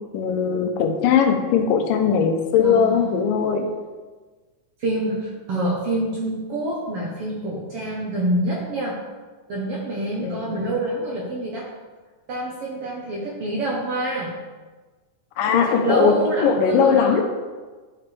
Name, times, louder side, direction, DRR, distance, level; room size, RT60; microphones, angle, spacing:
voice 1, 0.1-3.7 10.2-10.5 15.4-16.1 16.4-17.2, left 7 dB, 85° left, 5 dB, 2.4 m, -19 dB
voice 2, 2.6-3.2 4.8-9.0 9.5-11.7 12.3-14.4 15.5-17.2, right 1 dB, 65° right, -3 dB, 1.5 m, -26 dB
11.0 x 5.9 x 3.4 m, 1.3 s
omnidirectional pair, 3.8 m